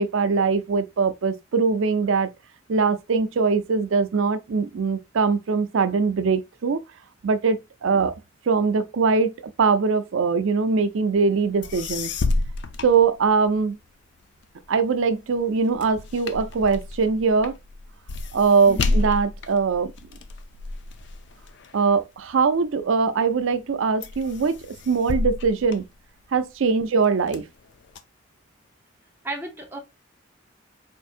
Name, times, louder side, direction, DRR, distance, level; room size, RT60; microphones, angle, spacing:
voice 1, 0.0-2.3 2.7-6.8 7.2-8.1 8.5-9.3 9.6-12.1 12.8-13.8 14.7-17.6 18.3-19.9 21.7-24.6 24.9-25.9 26.3-27.4, right 4 dB, 85° right, 0.5 m, -22 dB
sound 1, 11.3-11.4 11.6-13.7 14.2-22.8 23.3-23.7 24.0-26.5 27.0-28.0, left 2 dB, 60° left, 0.4 m, -30 dB
voice 2, 18.6-19.0 26.6-26.8 29.2-29.8, right 1 dB, 10° right, 0.8 m, -34 dB
4.5 x 2.7 x 2.4 m
head